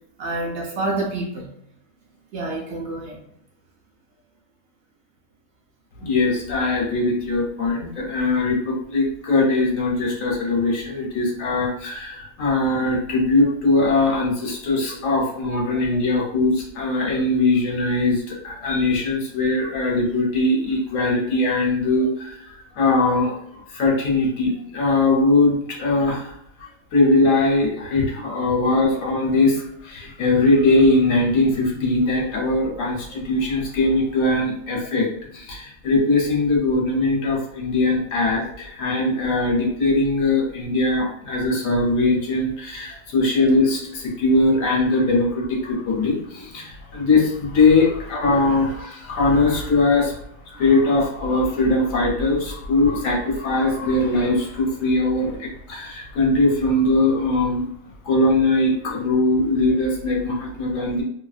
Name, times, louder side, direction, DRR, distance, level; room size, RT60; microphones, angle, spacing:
voice 1, 0.2-1.5 2.3-3.2 26.1-26.2 33.1-33.2 38.9-39.0 48.3-48.4, right 2 dB, 65° right, -2 dB, 0.8 m, -28 dB
voice 2, 6.0-22.4 22.8-23.3 23.7-26.3 26.9-35.1 35.3-50.2 50.5-57.7 58.0-61.0, left 2 dB, 70° left, -2 dB, 1.1 m, -20 dB
2.7 x 2.5 x 2.3 m, 0.71 s
omnidirectional pair, 1.4 m